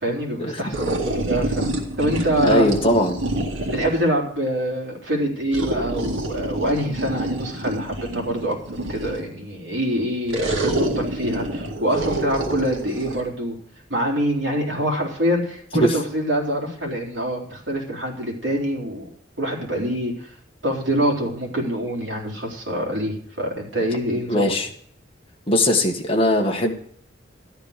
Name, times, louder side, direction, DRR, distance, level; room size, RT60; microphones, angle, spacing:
voice 1, 0.0-2.7 3.7-13.6 13.9-19.1 19.4-20.3 20.6-24.5, equal, 65° right, -1 dB, 3.7 m, -25 dB
sound 1, 0.7-4.1 5.5-9.3 10.3-13.2, right 1 dB, 90° right, 2.0 m, -27 dB
voice 2, 2.4-3.2 15.7-15.9 24.3-24.7 25.5-26.7, left 1 dB, 30° left, 1 dB, 1.7 m, -20 dB
13.0 x 10.5 x 5.1 m, 0.62 s
head